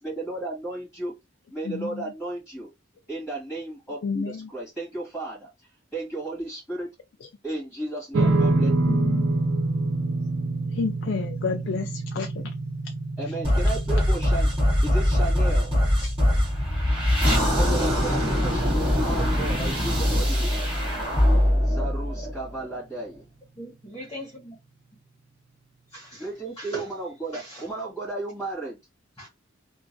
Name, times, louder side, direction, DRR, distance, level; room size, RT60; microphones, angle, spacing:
voice 1, 0.0-1.1 1.5-2.7 3.1-5.5 5.9-6.9 7.4-9.0 13.2-14.5 14.8-15.7 17.5-20.5 21.6-23.3 26.2-28.8, right 2 dB, ahead, 1.6 m, -34 dB
voice 2, 1.6-2.1 4.0-4.5 7.2-7.3 8.9-9.3 10.7-12.5 13.3-13.4 16.0-16.1, left 5 dB, 65° left, 0.4 m, -31 dB
sound 1, 8.1-20.7, right 2 dB, 70° right, 0.7 m, -28 dB
sound 2, 13.4-22.8, left 1 dB, 30° right, 1.6 m, -22 dB
voice 3, 23.6-24.6 25.9-26.2 26.6-26.9 27.3-27.6 29.2-29.3, equal, 20° left, 1.0 m, -39 dB
3.0 x 2.3 x 2.5 m
head